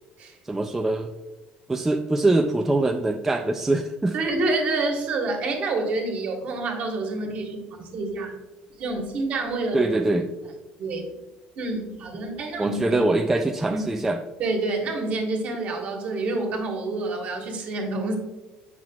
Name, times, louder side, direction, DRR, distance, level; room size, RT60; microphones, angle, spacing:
voice 1, 0.4-1.1 1.7-4.2 9.7-10.3 12.6-14.2, right 2 dB, 10° right, 4 dB, 0.3 m, -23 dB
voice 2, 4.1-8.3 8.8-10.0 10.8-11.0 11.6-13.0 13.7-13.8 14.4-18.2, right 2 dB, 50° right, 2 dB, 1.4 m, -28 dB
7.6 x 5.9 x 2.3 m, 1.1 s
cardioid pair, 135°, 3 cm